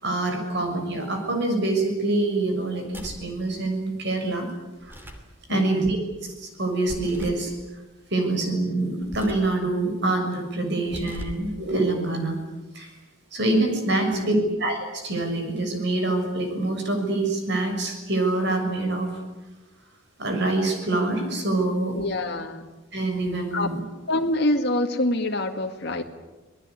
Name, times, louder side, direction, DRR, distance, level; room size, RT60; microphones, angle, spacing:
voice 1, 0.0-4.5 4.8-4.9 5.5-6.0 6.2-7.5 8.1-12.4 12.7-12.9 13.3-14.3 14.6-19.2 20.2-22.0 22.9-23.8, right 2 dB, 55° right, 4 dB, 6.6 m, -25 dB
sound 1, 2.9-3.3 4.8-5.3 6.9-7.5 9.0-9.5 10.8-11.5, equal, 10° right, 2.9 m, -38 dB
voice 2, 14.1-14.6 21.9-22.7 23.5-23.7 24.1-26.0, left 1 dB, 55° left, 3 dB, 2.0 m, -26 dB
27.0 x 19.5 x 9.7 m, 1.1 s
head